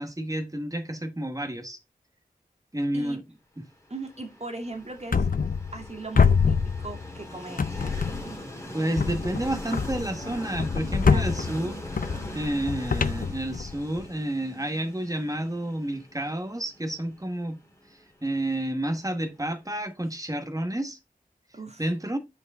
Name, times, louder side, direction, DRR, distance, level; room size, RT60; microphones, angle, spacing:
voice 1, 0.0-1.8 2.7-3.2 3.6-3.7 8.7-11.8 12.3-17.6 17.9-21.0 21.8-22.2, right 1 dB, 20° right, 1.4 m, -30 dB
Train, 3.9-19.7, equal, 20° left, 2.0 m, -42 dB
voice 2, 3.9-5.3 5.7-8.0 11.0-11.4 21.5-21.8, right 2 dB, 45° right, 1.9 m, -38 dB
sound 1, 5.1-5.9 6.1-7.2 7.6-8.4 9.0-14.0, left 5 dB, 65° left, 0.5 m, -26 dB
8.0 x 5.0 x 3.6 m
wide cardioid pair, 60°, 16 cm